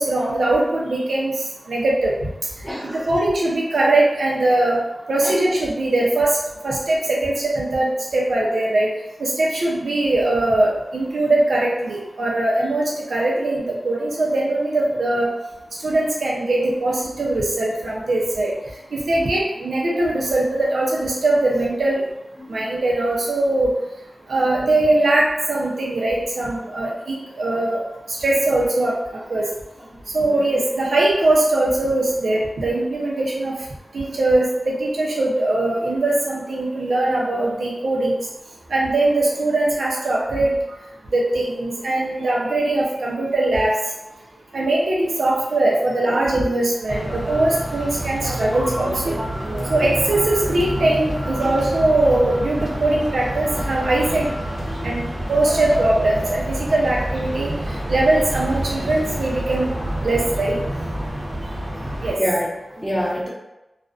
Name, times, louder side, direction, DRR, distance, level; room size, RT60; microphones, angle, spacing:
voice 1, 0.0-2.1 2.9-4.8 5.1-6.4 6.6-8.9 9.2-15.3 15.8-18.5 18.9-22.0 22.5-23.7 24.3-27.8 28.1-29.5 30.1-33.5 33.9-38.2 38.7-40.5 41.1-43.8 44.5-49.2 49.7-54.3 54.8-55.0 55.3-57.5 57.9-59.7 60.0-60.6 62.0-62.2, right 2 dB, 90° right, -3 dB, 0.5 m, -21 dB
voice 2, 2.6-3.1 5.2-5.3 22.4-22.7 29.9-30.0 30.3-30.4 44.5-44.6 49.5-49.7 51.4-51.5 54.7-54.9 62.2-63.3, equal, ahead, -6 dB, 0.7 m, -27 dB
sound 1, 46.9-62.1, right 1 dB, 35° right, 0.7 m, -28 dB
2.4 x 2.1 x 2.4 m, 0.95 s
wide cardioid pair, 55°, 0 cm